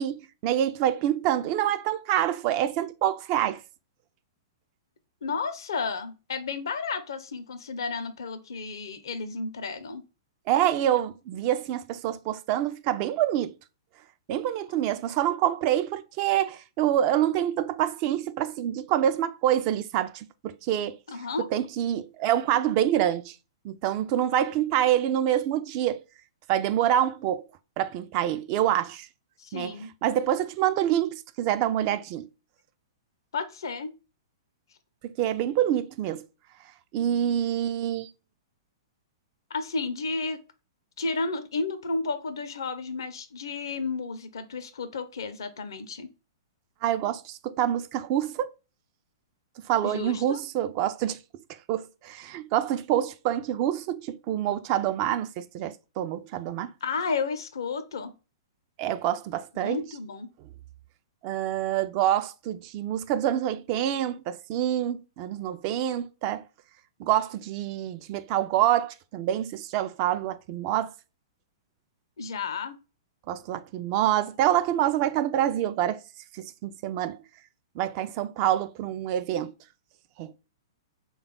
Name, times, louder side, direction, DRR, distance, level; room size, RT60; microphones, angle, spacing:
voice 1, 0.0-3.6 10.5-13.5 14.3-21.0 21.5-23.4 23.6-26.0 26.5-27.4 27.8-29.1 29.5-29.7 30.0-32.3 35.2-36.2 36.9-38.1 46.8-48.5 49.7-51.2 51.7-56.7 58.8-59.8 61.2-66.4 67.0-70.9 73.3-76.0 76.3-77.2 77.8-79.5 80.2-80.3, right 11 dB, 40° right, 0.3 m, -26 dB
voice 2, 5.2-10.0 21.1-21.5 29.4-29.9 33.3-33.9 39.5-40.4 41.0-46.1 49.8-50.4 56.8-58.1 59.6-60.3 72.2-72.8, left 4 dB, 70° left, 0.5 m, -32 dB
3.4 x 2.3 x 3.6 m
figure-of-eight pair, 110°, 2 cm